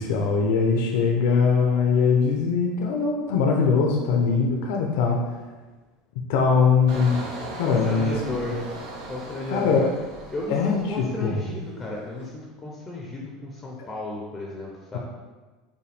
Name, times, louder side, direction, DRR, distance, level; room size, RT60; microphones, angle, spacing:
voice 1, 0.0-5.2 6.3-7.2 7.5-8.1 9.5-9.9 10.5-11.4, left 5 dB, 70° left, 1 dB, 0.5 m, -21 dB
Engine, 6.9-11.5 11.9-12.2, right 2 dB, 80° right, 1.1 m, -38 dB
voice 2, 7.6-8.8 9.1-9.8 10.3-15.0, left 2 dB, 15° left, -2 dB, 0.5 m, -33 dB
5.5 x 2.2 x 3.3 m, 1.3 s
supercardioid pair, 160°, 0 cm